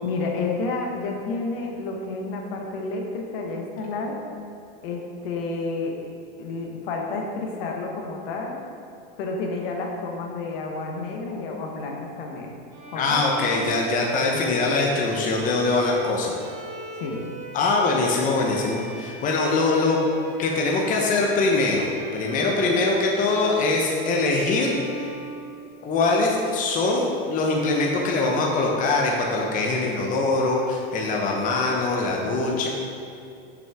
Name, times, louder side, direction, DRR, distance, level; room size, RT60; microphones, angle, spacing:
voice 1, 0.0-4.2 4.8-6.0 6.4-8.6 9.2-12.6 12.9-13.2 14.3-14.5 16.9-17.2, left 3 dB, 70° left, 1 dB, 1.1 m, -30 dB
Bowed string instrument, 12.7-26.2, right 2 dB, 45° right, 0.9 m, -39 dB
voice 2, 12.9-16.4 17.5-20.0 20.4-21.9 22.1-25.1 25.8-32.7, left 3 dB, 30° left, -1 dB, 0.8 m, -23 dB
6.2 x 6.1 x 3.5 m, 2.6 s
supercardioid pair, 130°, 29 cm